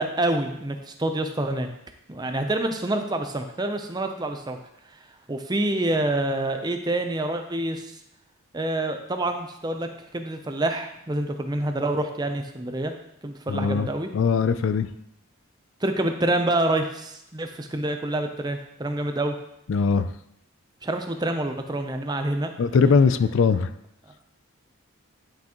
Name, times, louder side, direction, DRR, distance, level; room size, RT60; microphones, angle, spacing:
voice 1, 0.0-1.7 2.1-4.6 5.3-8.0 8.5-12.9 13.2-14.1 15.8-19.4 20.8-22.5, right 1 dB, 20° right, 6 dB, 0.5 m, -27 dB
voice 2, 13.5-13.9 14.1-14.9 19.7-20.1 22.6-23.7, left 5 dB, 65° left, 13 dB, 0.3 m, -20 dB
9.9 x 5.9 x 3.0 m, 0.78 s
head